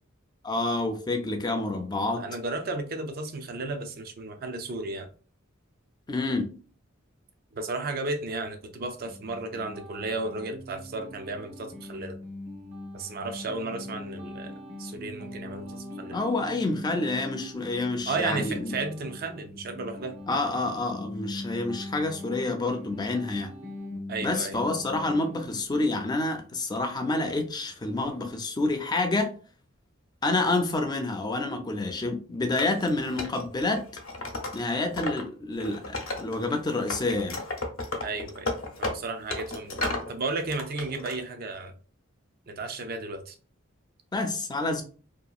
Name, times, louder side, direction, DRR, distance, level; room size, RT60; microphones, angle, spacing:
voice 1, 0.4-2.2 6.1-6.5 16.1-18.7 20.3-23.5 24.2-29.3 30.2-33.8 34.5-37.4 44.1-44.8, left 2 dB, 20° left, 0.4 m, -28 dB
voice 2, 2.2-5.1 7.5-12.2 12.9-14.5 14.8-16.2 18.1-20.2 24.1-24.6 38.0-38.5 38.8-41.8 42.5-43.4, right 3 dB, 45° right, 0.4 m, -34 dB
sound 1, 9.1-25.6, left 1 dB, 70° right, 0.8 m, -41 dB
Wood, 32.5-35.2 35.5-36.6 36.9-40.1 40.5-41.2, left 2 dB, 80° left, 0.7 m, -34 dB
2.8 x 2.4 x 2.3 m
head